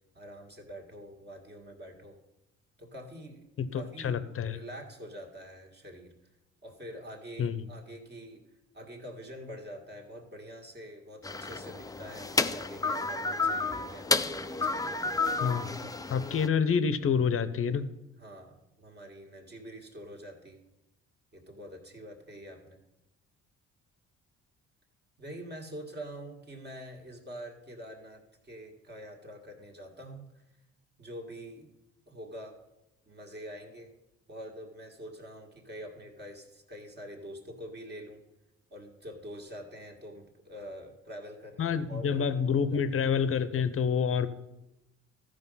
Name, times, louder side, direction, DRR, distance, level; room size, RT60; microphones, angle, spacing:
voice 1, 0.1-2.2 2.8-3.4 3.7-6.1 6.6-8.4 8.7-15.0 18.2-20.6 21.3-22.8 25.2-30.4 31.0-31.7 32.1-32.5 33.1-33.9 34.3-38.2 38.7-42.8, equal, 35° right, 1 dB, 1.9 m, -45 dB
voice 2, 3.6-4.6 7.4-7.7 15.4-15.7 16.1-17.9 41.6-44.3, left 6 dB, 45° left, 14 dB, 0.8 m, -28 dB
sound 1, 11.2-16.5, left 3 dB, 10° left, 0.5 m, -31 dB
13.5 x 5.2 x 5.6 m, 0.94 s
cardioid pair, 90°, 30 cm